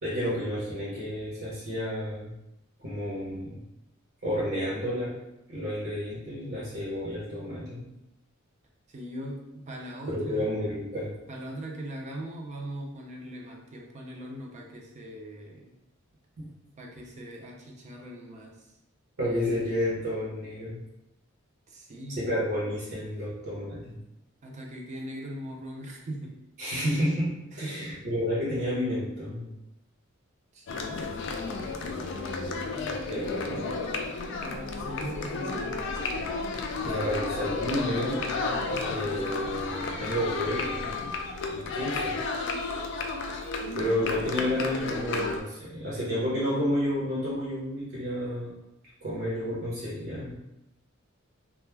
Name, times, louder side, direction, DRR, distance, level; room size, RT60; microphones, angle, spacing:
voice 1, 0.0-2.3 2.8-3.6 4.2-5.1 5.5-7.8 10.1-11.1 16.4-16.5 19.2-20.8 22.2-24.0 26.6-29.5 32.8-33.7 36.8-38.2 38.9-41.0 41.5-42.2 43.7-48.5 49.0-50.3, equal, 60° right, -8 dB, 0.8 m, -31 dB
voice 2, 8.9-10.5 11.3-15.7 16.8-18.6 21.7-22.3 24.4-26.3 27.5-27.9 30.5-30.9 34.4-35.7, right 1 dB, 35° right, 0 dB, 0.4 m, -40 dB
sound 1, 30.7-45.4, left 3 dB, 60° left, 0.3 m, -32 dB
2.2 x 2.0 x 3.2 m, 0.87 s
head